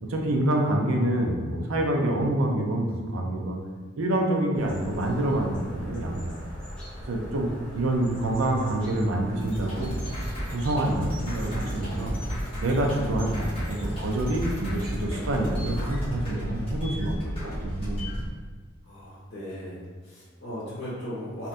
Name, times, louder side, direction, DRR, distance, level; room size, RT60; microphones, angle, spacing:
voice 1, 0.0-3.6 4.0-6.4 7.1-7.5 7.7-10.0 10.5-12.1 12.6-17.2 17.4-18.0, right 1 dB, 80° right, 1 dB, 0.5 m, -27 dB
sound 1, 4.5-16.3, equal, 5° left, 0.7 m, -41 dB
sound 2, 9.4-18.3, equal, 25° left, 1.0 m, -33 dB
voice 2, 18.8-21.5, equal, 55° left, -11 dB, 1.5 m, -37 dB
3.4 x 2.7 x 2.5 m, 1.5 s
head